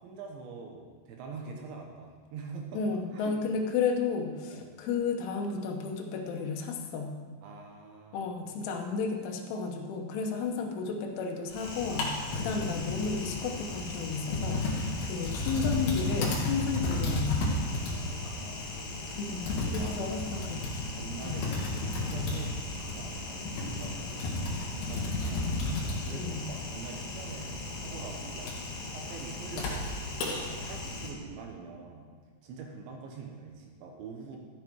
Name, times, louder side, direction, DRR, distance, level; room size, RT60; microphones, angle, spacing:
voice 1, 0.0-2.8 3.1-3.4 4.5-4.7 7.4-8.5 12.4-12.6 14.9-15.2 17.8-18.8 19.8-24.3 24.7-25.5 26.0-28.5 28.9-32.1 32.4-34.4, right 4 dB, 70° right, 1 dB, 3.3 m, -45 dB
voice 2, 2.7-7.1 8.1-17.5 19.2-20.9 21.3-21.5 26.2-26.4, left 5 dB, 80° left, 2 dB, 3.5 m, -33 dB
Typing, 11.5-31.1, left 2 dB, 60° left, 3.5 m, -33 dB
13.5 x 8.5 x 4.7 m, 1.5 s
omnidirectional pair, 5.7 m